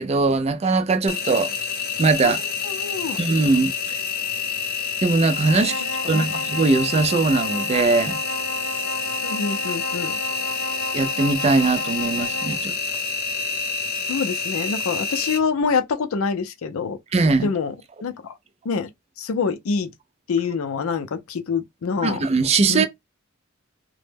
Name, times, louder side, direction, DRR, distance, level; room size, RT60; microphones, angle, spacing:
voice 1, 0.0-1.5 2.0-2.4 3.2-4.0 5.0-8.2 10.9-12.7 17.1-17.5 22.0-22.9, right 3 dB, 30° right, 0.3 m, -20 dB
Engine, 1.1-15.4, left 5 dB, 50° left, 0.7 m, -28 dB
voice 2, 2.6-3.2 6.0-6.3 9.2-10.2 14.1-17.0 17.4-17.7 18.0-18.3 18.6-18.9 19.2-19.9 20.3-22.2 22.7-22.9, left 5 dB, 80° left, 0.4 m, -25 dB
sound 1, 5.3-12.7, equal, 85° right, 0.7 m, -33 dB
2.1 x 2.0 x 3.2 m
head